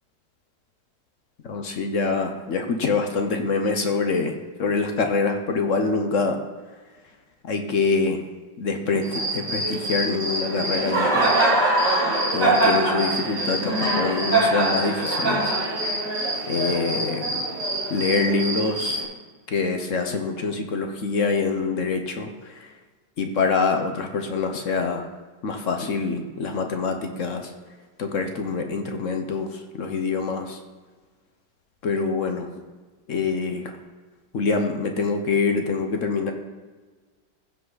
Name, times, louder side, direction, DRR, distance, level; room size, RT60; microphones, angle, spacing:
voice 1, 1.4-6.4 7.4-8.2 8.6-11.3 12.3-15.5 16.5-17.4 17.9-19.0 19.5-22.7 23.2-25.1 25.4-27.5 28.0-30.6 31.8-32.5 33.1-33.8 34.3-36.3, left 4 dB, 55° left, 5 dB, 1.1 m, -25 dB
Cricket, 9.0-19.0, right 2 dB, 80° right, 3.3 m, -24 dB
15.5 x 5.5 x 4.0 m, 1.3 s
omnidirectional pair, 1.9 m